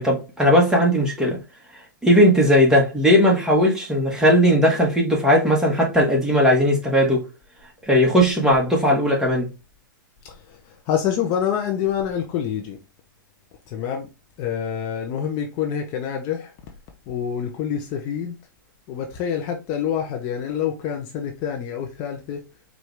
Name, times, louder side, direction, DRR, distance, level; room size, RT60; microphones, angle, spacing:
voice 1, 0.0-1.4 2.0-7.2 7.9-9.5, equal, 5° right, 1.4 m, -17 dB
voice 2, 10.9-12.8 13.7-14.1 14.4-16.5 17.1-18.3 18.9-22.4, left 8 dB, 35° left, 0.7 m, -26 dB
4.7 x 2.6 x 3.3 m
hypercardioid pair, 130°, 11 cm